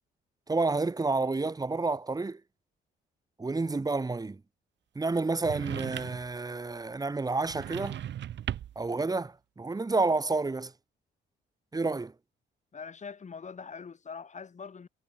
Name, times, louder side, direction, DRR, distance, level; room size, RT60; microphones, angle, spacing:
voice 1, 0.5-2.4 3.4-4.4 4.9-8.0 8.7-10.7 11.7-12.1, right 3 dB, 20° right, 1.3 m, -30 dB
sound 1, 5.4-6.4 7.4-8.9, right 11 dB, 65° right, 1.4 m, -37 dB
voice 2, 12.7-14.9, left 5 dB, 35° left, 2.9 m, -43 dB
cardioid pair, 90°, 20 cm